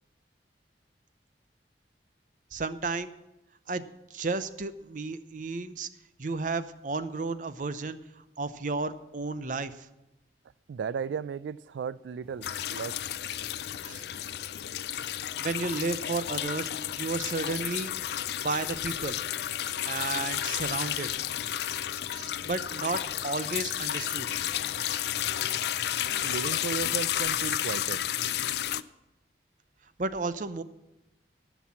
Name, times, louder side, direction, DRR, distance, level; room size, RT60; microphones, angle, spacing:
voice 1, 2.5-3.1 3.7-3.8 4.1-5.9 6.2-9.9 13.8-14.1 15.4-16.7 16.9-17.9 18.4-19.2 19.8-21.1 22.1-24.3 30.0-30.6, right 3 dB, 45° right, 0.6 m, -33 dB
voice 2, 10.7-13.0 26.2-28.0, right 6 dB, 85° right, 0.3 m, -35 dB
sound 1, 12.2-28.3, equal, 10° left, 2.0 m, -57 dB
sound 2, 12.4-28.8, left 11 dB, 65° left, 0.4 m, -32 dB
15.5 x 6.1 x 7.3 m
head